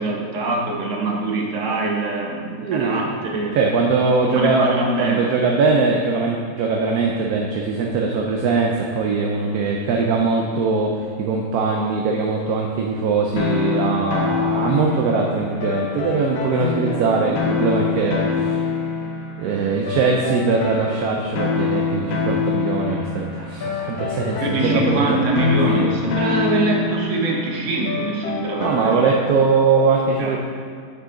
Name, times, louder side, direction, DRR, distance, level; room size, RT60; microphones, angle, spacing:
voice 1, 0.0-3.5 4.2-5.4 24.4-29.2 30.2-30.4, right 2 dB, 50° right, -1 dB, 1.3 m, -23 dB
voice 2, 2.6-3.2 3.5-18.6 19.4-25.2 25.7-25.9 28.6-30.4, right 4 dB, 70° right, 0 dB, 1.0 m, -21 dB
sound 1, 13.4-29.3, left 5 dB, 70° left, 1.3 m, -26 dB
7.3 x 5.7 x 3.8 m, 2.2 s
omnidirectional pair, 1.8 m